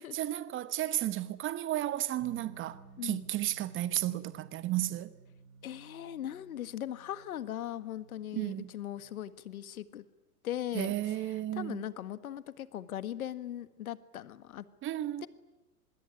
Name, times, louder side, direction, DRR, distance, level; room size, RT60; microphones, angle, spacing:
voice 1, 0.1-5.1 8.3-8.7 10.7-11.8 14.8-15.3, right 14 dB, 25° right, 1.1 m, -33 dB
sound 1, 2.2-9.0, right 4 dB, 55° right, 5.7 m, -55 dB
voice 2, 3.0-3.3 5.6-10.0 10.4-14.6 15.2-15.3, left 11 dB, 65° left, 1.7 m, -39 dB
25.0 x 21.0 x 9.9 m
figure-of-eight pair, 100°, 45 cm